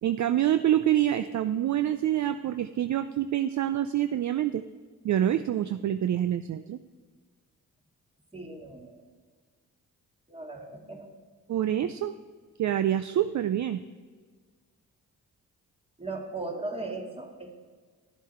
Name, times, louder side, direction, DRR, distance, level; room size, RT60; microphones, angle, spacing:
voice 1, 0.0-4.6 5.0-6.8 11.5-12.2 12.6-13.8, right 11 dB, 50° right, 11 dB, 0.4 m, -26 dB
voice 2, 8.3-9.0 10.3-11.1 16.0-17.5, right 2 dB, 15° right, 2 dB, 2.0 m, -37 dB
11.5 x 7.1 x 4.4 m, 1.5 s
supercardioid pair, 55°, 37 cm